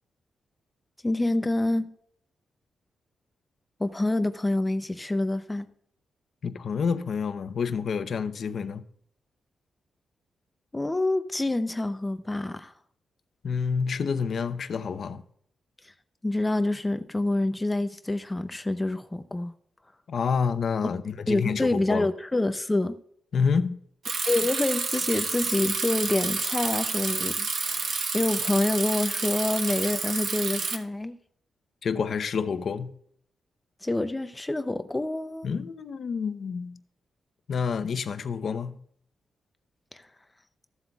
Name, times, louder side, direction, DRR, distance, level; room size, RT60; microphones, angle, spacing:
voice 1, 1.0-1.9 3.8-5.7 10.7-12.7 15.8-15.9 16.2-19.5 21.3-23.0 24.2-31.2 33.8-35.5 39.9-40.0, left 2 dB, 15° left, 0.5 m, -27 dB
voice 2, 6.4-8.8 13.4-15.2 20.1-22.1 23.3-23.8 31.8-32.9 35.4-36.8 37.5-38.8, left 6 dB, 55° left, 0.7 m, -28 dB
Bicycle, 24.0-30.8, right 4 dB, 60° right, 1.2 m, -29 dB
15.0 x 7.8 x 2.3 m
wide cardioid pair, 135°, 0 cm